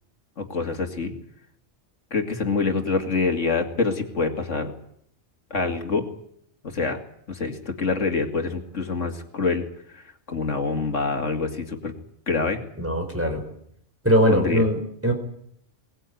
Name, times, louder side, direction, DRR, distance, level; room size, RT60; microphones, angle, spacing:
voice 1, 0.4-1.1 2.1-4.7 5.5-6.1 6.6-7.0 7.3-9.6 9.9-11.9 12.3-12.6 14.3-14.6, left 4 dB, 85° left, 5 dB, 2.8 m, -26 dB
voice 2, 12.8-13.5 14.0-15.1, equal, 10° right, 3 dB, 4.7 m, -21 dB
22.0 x 19.5 x 9.4 m, 0.69 s
omnidirectional pair, 1.2 m